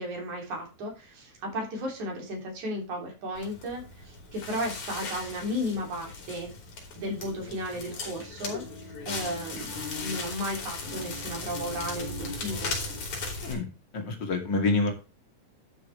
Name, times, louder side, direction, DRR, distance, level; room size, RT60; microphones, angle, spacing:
voice 1, 0.0-6.5 7.0-8.6 9.1-9.7 10.0-12.8, equal, 75° right, 1 dB, 4.7 m, -34 dB
Crackle, 3.3-13.5, left 3 dB, 90° left, 4.6 m, -37 dB
voice 2, 13.9-14.9, left 3 dB, 40° left, 3 dB, 2.9 m, -26 dB
11.5 x 6.8 x 3.4 m, 0.31 s
omnidirectional pair, 3.4 m